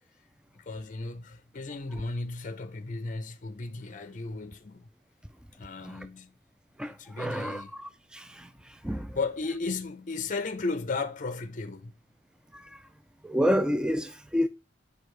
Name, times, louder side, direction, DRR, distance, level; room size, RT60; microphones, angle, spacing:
voice 1, 0.5-4.9 5.6-6.3 6.9-7.7 8.9-11.9, left 3 dB, 45° left, 0.6 m, -35 dB
voice 2, 6.8-8.5 8.8-9.2 13.2-14.5, equal, 5° right, 0.3 m, -29 dB
6.6 x 4.8 x 3.2 m
head